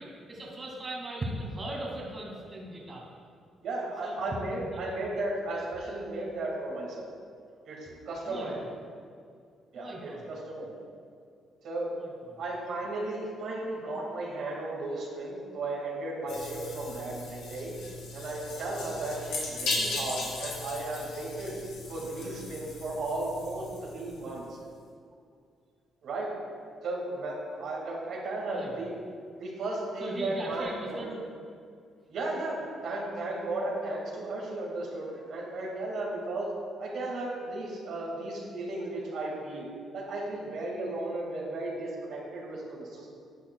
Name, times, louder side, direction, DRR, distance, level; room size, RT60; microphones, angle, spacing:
voice 1, 0.0-3.1 4.0-5.0 8.3-8.7 9.8-10.3 11.9-12.4 19.2-19.7 22.0-22.3 28.5-28.8 30.0-31.1, right 1 dB, 30° right, -3 dB, 2.1 m, -39 dB
voice 2, 3.6-7.1 7.6-8.6 9.7-10.8 11.6-11.9 12.4-17.7 18.1-21.6 21.9-24.6 26.0-26.3 26.8-29.0 29.4-31.1 32.1-36.5 36.8-39.7 39.9-43.1, right 2 dB, 75° right, -3 dB, 2.0 m, -35 dB
sound 1, 16.3-24.4, left 2 dB, 80° left, 1.9 m, -37 dB
10.5 x 9.2 x 2.3 m, 2.2 s
cardioid pair, 90°, 0 cm